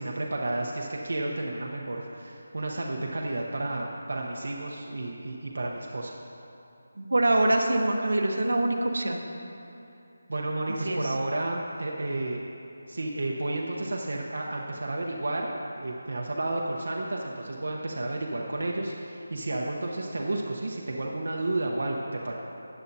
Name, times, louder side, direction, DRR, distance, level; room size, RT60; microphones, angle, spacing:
voice 1, 0.0-6.2 10.3-12.4 12.9-15.5 15.8-22.3, right 2 dB, 65° right, -1 dB, 0.9 m, -31 dB
voice 2, 7.0-9.2 10.8-11.0, right 1 dB, 85° right, 2 dB, 1.1 m, -24 dB
14.0 x 8.9 x 2.7 m, 2.8 s
figure-of-eight pair, 180°, 0 cm